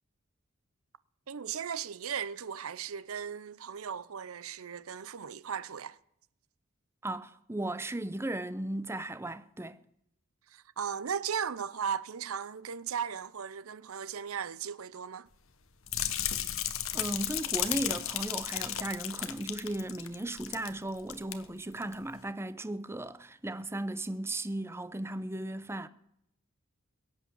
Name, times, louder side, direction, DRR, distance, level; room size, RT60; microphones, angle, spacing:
voice 1, 1.3-6.0 10.5-15.3, right 7 dB, 90° right, 0.6 m, -37 dB
voice 2, 7.0-9.8 16.9-25.9, right 1 dB, 10° right, 0.6 m, -36 dB
sound 1, 15.9-20.7 21.0-21.3 21.8-21.9, left 11 dB, 70° left, 1.2 m, -34 dB
22.5 x 8.7 x 7.0 m
head